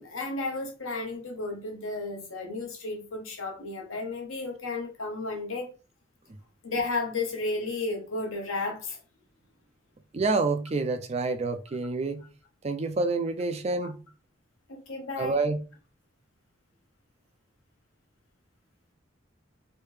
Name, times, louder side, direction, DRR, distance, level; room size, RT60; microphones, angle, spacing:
voice 1, 0.0-5.7 6.6-9.0 13.8-13.9 14.7-15.4, left 3 dB, 75° left, 1.1 m, -33 dB
voice 2, 10.1-12.2 12.6-14.0 15.2-15.6, right 3 dB, 30° right, 0.3 m, -28 dB
3.3 x 2.7 x 3.2 m
head